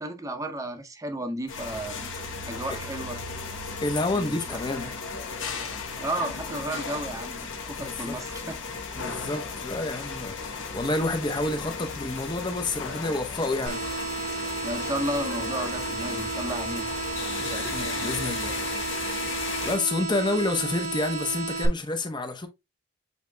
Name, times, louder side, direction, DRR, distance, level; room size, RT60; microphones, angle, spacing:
voice 1, 0.0-2.1 2.4-3.2 4.1-4.9 6.0-8.6 14.6-16.9, right 1 dB, 15° right, 0.6 m, -33 dB
sound 1, 1.5-19.8, left 4 dB, 70° left, 1.0 m, -35 dB
voice 2, 3.8-4.9 7.8-8.2 8.9-10.4 10.7-13.8 17.4-18.6 19.6-22.5, left 2 dB, 25° left, 0.7 m, -29 dB
sound 2, 13.7-21.7, right 4 dB, 55° right, 1.0 m, -33 dB
8.2 x 2.8 x 2.2 m
head